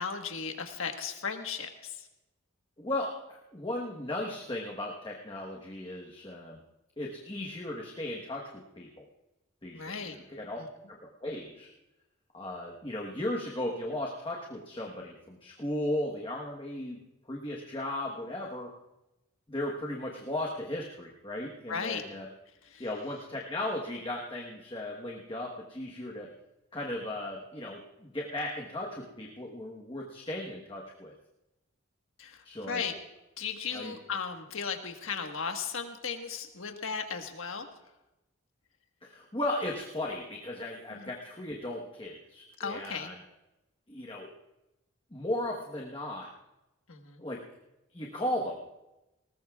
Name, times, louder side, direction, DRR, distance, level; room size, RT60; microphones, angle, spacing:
voice 1, 0.0-2.1 9.7-10.2 10.6-10.7 21.7-22.0 22.6-22.9 32.2-32.9 33.4-37.7 40.9-41.1 42.6-43.1 46.9-47.2, left 6 dB, 75° left, 4 dB, 1.5 m, -36 dB
voice 2, 2.8-6.6 7.0-9.0 9.6-10.6 10.9-11.7 12.3-17.0 17.3-18.7 19.5-22.3 22.8-26.3 26.7-31.1 32.4-32.8 33.7-33.9 39.0-43.1 43.9-44.3 45.1-46.3 47.2-47.4 47.9-48.7, left 1 dB, 25° left, -1 dB, 1.2 m, -36 dB
20.0 x 19.0 x 2.4 m, 0.96 s
head